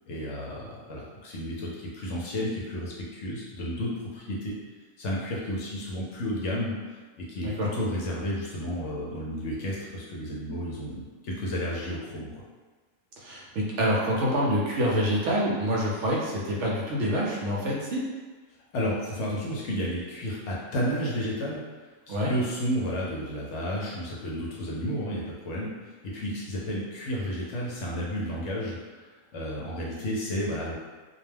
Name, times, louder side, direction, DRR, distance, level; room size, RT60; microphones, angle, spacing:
voice 1, 0.1-4.5 5.0-7.0 7.3-12.3 18.7-21.6 22.1-28.8 29.3-30.7, equal, 65° left, -4 dB, 0.8 m, -32 dB
voice 2, 13.2-18.0 22.1-22.3, equal, 70° right, -4 dB, 0.8 m, -26 dB
2.4 x 2.1 x 3.2 m, 1.3 s
omnidirectional pair, 1.4 m